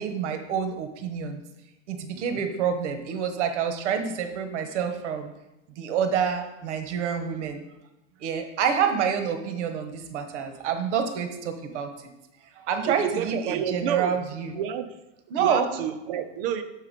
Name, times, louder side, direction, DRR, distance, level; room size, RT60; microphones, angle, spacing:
voice 1, 0.0-1.4 1.9-5.3 5.8-7.6 8.2-12.1 12.6-14.5 15.3-15.7, right 7 dB, 75° right, 7 dB, 1.0 m, -28 dB
voice 2, 12.8-14.2 14.5-14.9 15.4-16.6, right 9 dB, 50° right, 8 dB, 0.6 m, -29 dB
6.6 x 4.8 x 5.1 m, 0.94 s
supercardioid pair, 180°, 35 cm